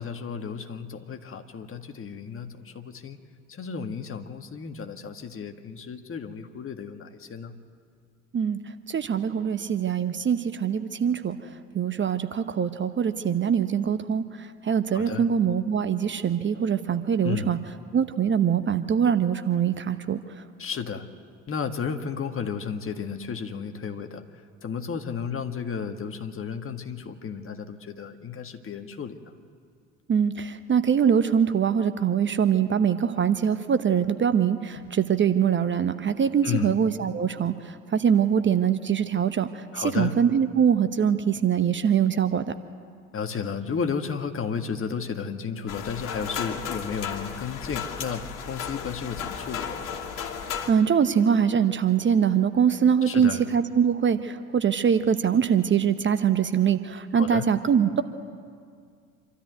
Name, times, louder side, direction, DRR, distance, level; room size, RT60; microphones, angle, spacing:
voice 1, 0.0-3.2 3.5-7.5 14.9-15.2 17.2-17.5 20.6-21.1 21.5-24.2 24.6-29.3 36.4-36.8 39.7-40.1 43.1-49.8 53.1-53.4 57.1-57.5, left 6 dB, 30° left, 6 dB, 1.8 m, -33 dB
voice 2, 8.9-11.4 11.7-17.6 17.9-20.2 30.1-42.4 50.4-58.0, right 8 dB, 30° right, 10 dB, 0.9 m, -23 dB
sound 1, 45.7-50.7, left 7 dB, 50° left, 2.8 m, -34 dB
26.5 x 13.0 x 9.4 m, 2.2 s
hypercardioid pair, 60°, 40 cm